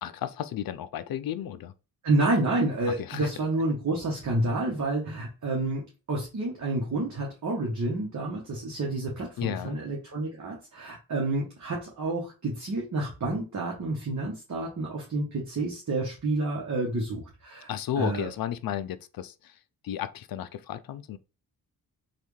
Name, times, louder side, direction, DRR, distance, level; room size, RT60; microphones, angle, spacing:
voice 1, 0.0-1.7 2.9-3.3 9.4-9.8 17.7-21.2, left 10 dB, 65° left, 0.5 m, -33 dB
voice 2, 2.0-17.7 18.0-18.3, right 2 dB, 45° right, 1.1 m, -29 dB
3.2 x 2.5 x 3.1 m
cardioid pair, 60°, 39 cm